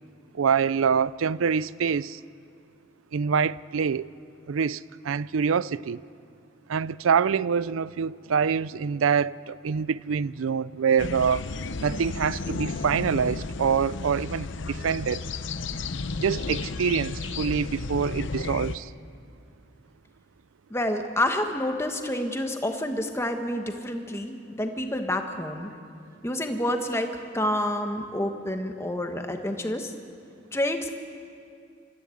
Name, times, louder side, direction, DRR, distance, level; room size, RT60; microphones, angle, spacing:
voice 1, 0.3-2.2 3.1-4.1 4.5-4.8 5.0-6.0 6.7-11.4 11.8-15.2 16.2-18.9, right 6 dB, 90° right, 0.5 m, -25 dB
sound 1, 11.0-18.8, left 3 dB, 65° left, 0.7 m, -33 dB
voice 2, 20.7-25.7 26.2-29.9 30.5-30.9, left 1 dB, 15° left, 1.3 m, -28 dB
26.5 x 14.0 x 8.5 m
head